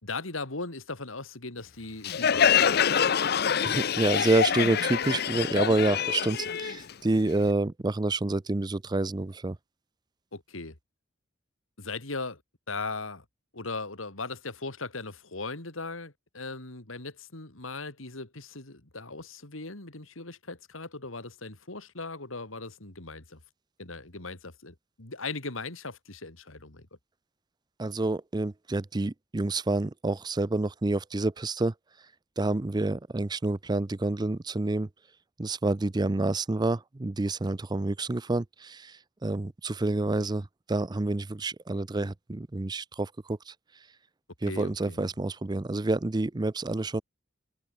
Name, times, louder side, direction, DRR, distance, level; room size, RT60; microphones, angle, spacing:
voice 1, 0.0-2.8 10.3-10.8 11.8-12.4 12.7-13.2 13.5-23.4 23.8-26.9 44.5-45.0, left 3 dB, 85° left, 3.2 m, -38 dB
Crowd, 2.0-7.5, left 7 dB, 50° left, 0.6 m, -25 dB
voice 2, 3.6-9.6 27.8-31.7 32.4-34.9 35.4-43.5 44.4-47.0, right 2 dB, 20° right, 0.5 m, -28 dB
head